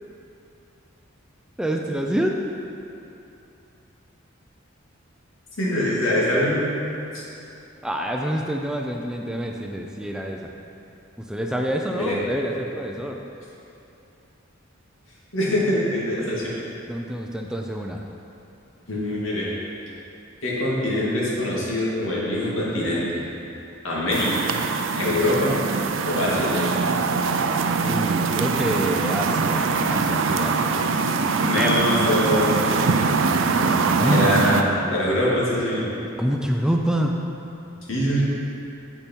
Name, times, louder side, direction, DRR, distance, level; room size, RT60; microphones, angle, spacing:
voice 1, 1.6-2.4 7.8-10.5 11.2-13.2 16.9-18.0 27.8-30.8 31.5-31.7 33.6-34.3 36.0-37.2, right 1 dB, 5° right, 1 dB, 0.4 m, -27 dB
voice 2, 5.6-6.7 7.1-7.2 11.9-12.2 15.3-16.5 18.9-19.5 20.4-23.2 23.8-24.4 25.0-25.6 26.1-26.8 31.4-32.9 34.0-35.9 37.9-38.2, left 1 dB, 80° left, -6 dB, 2.2 m, -23 dB
sound 1, 24.1-34.6, right 4 dB, 70° right, 0.5 m, -23 dB
8.7 x 7.1 x 4.5 m, 2.8 s
head